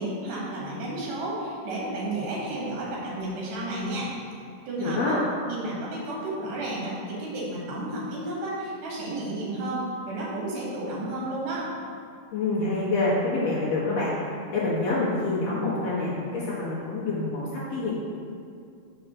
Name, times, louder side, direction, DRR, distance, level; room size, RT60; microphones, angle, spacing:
voice 1, 0.0-4.1 4.7-5.2 5.5-11.7, right 1 dB, 65° right, -5 dB, 2.8 m, -32 dB
voice 2, 4.8-5.2 12.3-17.9, left 2 dB, 65° left, -7 dB, 1.7 m, -27 dB
5.5 x 4.8 x 5.9 m, 2.3 s
omnidirectional pair, 4.3 m